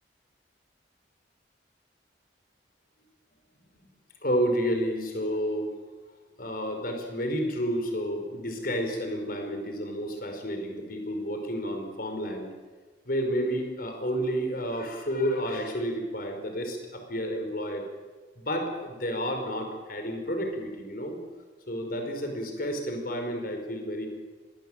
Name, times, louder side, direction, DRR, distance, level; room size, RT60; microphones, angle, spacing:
voice 1, 4.2-5.8 6.4-12.5 13.1-17.8 18.4-21.2 21.7-24.1, equal, 50° left, 5 dB, 5.3 m, -30 dB
24.5 x 20.0 x 9.1 m, 1.3 s
head